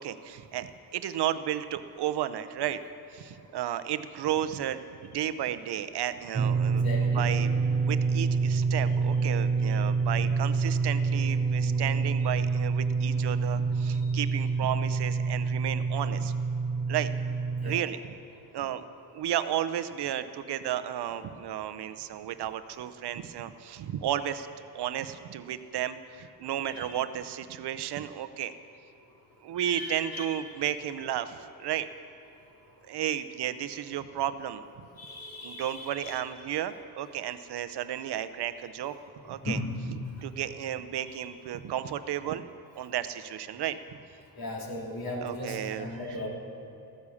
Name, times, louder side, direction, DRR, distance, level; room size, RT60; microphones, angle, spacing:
voice 1, 0.0-2.8 3.1-7.5 7.8-16.3 16.9-17.1 17.6-18.1 18.5-18.8 19.1-24.5 24.7-28.5 29.4-31.9 32.9-34.6 35.4-38.9 39.2-39.6 39.9-42.4 42.8-43.8 45.2-46.2, right 11 dB, 70° right, 12 dB, 0.8 m, -33 dB
sound 1, 6.3-17.8, right 4 dB, 20° right, 0.4 m, -27 dB
voice 2, 6.7-7.2 13.9-14.0 17.6-17.8 26.6-26.9 29.6-30.3 35.0-36.2 39.4-39.8 44.4-46.3, left 2 dB, 55° left, -2 dB, 3.0 m, -37 dB
14.0 x 9.8 x 7.1 m, 2.8 s
cardioid pair, 90°, 41 cm